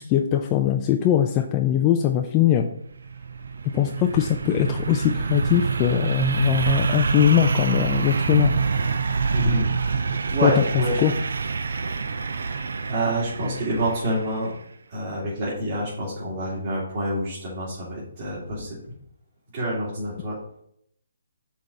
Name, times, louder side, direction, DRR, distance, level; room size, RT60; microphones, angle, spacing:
voice 1, 0.0-2.7 3.7-8.5 10.4-10.5 11.0-11.1, left 11 dB, 25° left, 4 dB, 0.4 m, -21 dB
sound 1, 2.9-14.5, right 5 dB, 70° right, 0.5 m, -26 dB
voice 2, 9.3-9.7 10.3-11.0 12.4-14.5 14.9-18.8 19.5-20.4, right 1 dB, 45° right, -8 dB, 2.5 m, -27 dB
5.8 x 3.5 x 5.3 m, 0.71 s
figure-of-eight pair, 145°, 0 cm